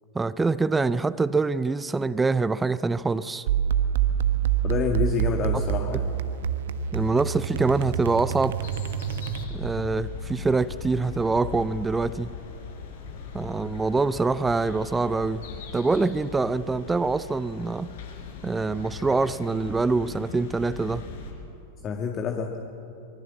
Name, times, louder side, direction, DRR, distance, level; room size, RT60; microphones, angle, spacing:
voice 1, 0.1-3.5 5.5-5.6 6.9-8.7 9.5-12.3 13.3-15.4 15.7-17.9 18.4-21.1, right 3 dB, 10° right, 0.6 m, -25 dB
sound 1, 3.5-9.8, right 9 dB, 55° right, 1.3 m, -27 dB
voice 2, 4.6-6.1 21.8-22.5, left 6 dB, 30° left, 1.9 m, -27 dB
sound 2, 8.6-21.3, left 5 dB, 55° left, 4.8 m, -39 dB
25.0 x 23.5 x 7.5 m
figure-of-eight pair, 90°, 0 cm